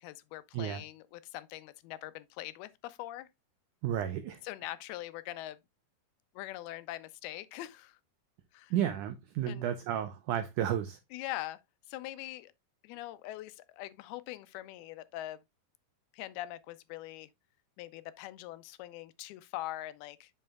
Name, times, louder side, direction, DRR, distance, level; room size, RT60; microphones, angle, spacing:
voice 1, 0.0-3.3 4.4-5.6 6.4-8.0 8.5-8.7 9.5-9.7 11.1-11.6 11.9-12.5 12.8-15.4 16.1-17.3 17.8-20.3, left 15 dB, 90° left, 2.6 m, -42 dB
voice 2, 3.8-4.4 8.7-11.0, right 10 dB, 90° right, 1.8 m, -32 dB
7.7 x 7.2 x 2.3 m
omnidirectional pair, 4.3 m